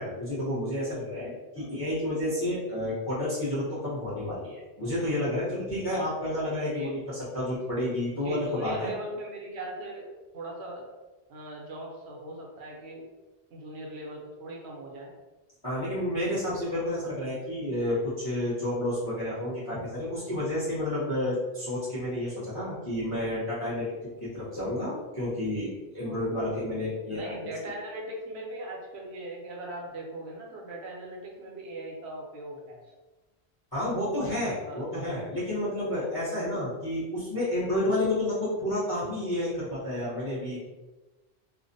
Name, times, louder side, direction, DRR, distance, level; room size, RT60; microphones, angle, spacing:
voice 1, 0.0-8.9 15.6-23.9 24.2-27.5 33.7-40.7, left 1 dB, 25° left, -10 dB, 0.7 m, -30 dB
voice 2, 8.1-10.8 11.3-13.1 13.5-15.1 26.1-26.2 27.1-32.9 34.6-34.8, right 1 dB, 80° right, -1 dB, 0.9 m, -40 dB
2.5 x 2.1 x 2.5 m, 1.2 s
omnidirectional pair, 1.1 m